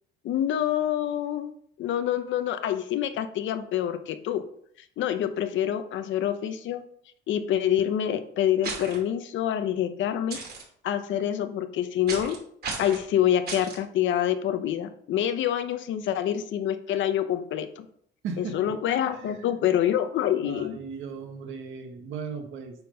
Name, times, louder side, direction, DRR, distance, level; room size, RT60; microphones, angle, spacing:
voice 1, 0.2-1.5 1.8-4.4 5.0-6.8 7.3-10.4 10.8-12.4 12.8-17.9 18.4-20.8, left 10 dB, 65° left, 10 dB, 0.8 m, -26 dB
sound 1, 8.6-9.0 10.3-10.6 12.1-12.4 12.6-13.0 13.5-13.8, right 4 dB, 50° right, 2.9 m, -34 dB
voice 2, 18.2-18.6 19.2-19.4 20.4-22.7, right 5 dB, 75° right, 5 dB, 1.4 m, -36 dB
8.9 x 3.8 x 5.2 m, 0.65 s
cardioid pair, 135°, 21 cm